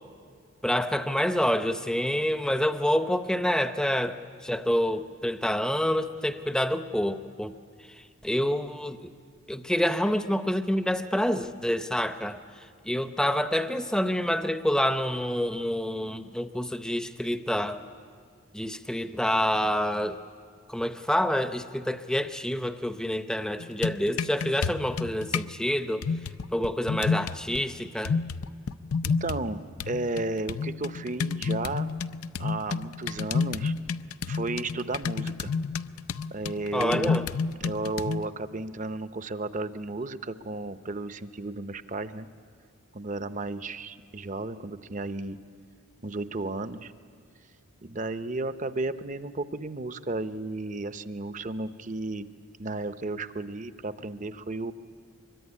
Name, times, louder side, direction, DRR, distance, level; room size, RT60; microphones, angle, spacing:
voice 1, 0.6-7.5 7.9-9.1 9.5-17.8 18.5-20.2 20.7-26.1 26.5-28.2 36.7-37.3, equal, 5° left, 9 dB, 0.7 m, -27 dB
sound 1, 23.6-25.5 26.0-27.6 28.0-29.5 29.8-38.3, left 5 dB, 85° left, 0.6 m, -30 dB
voice 2, 29.0-29.6 29.9-31.9 32.4-33.7 34.3-35.5 36.3-37.2 37.6-42.3 42.9-45.4 46.0-46.9 47.8-52.3 52.6-54.7, right 2 dB, 35° right, 11 dB, 0.7 m, -33 dB
25.0 x 22.5 x 9.9 m, 2.2 s
head